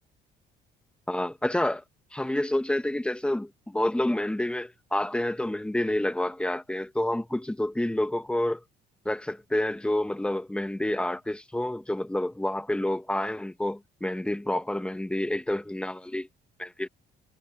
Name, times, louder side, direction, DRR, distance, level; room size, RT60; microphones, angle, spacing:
voice 1, 1.1-1.8 2.1-8.6 9.1-16.3 16.6-16.9, left 1 dB, 5° left, 1.7 m, -28 dB
cardioid pair, 110°, 17 cm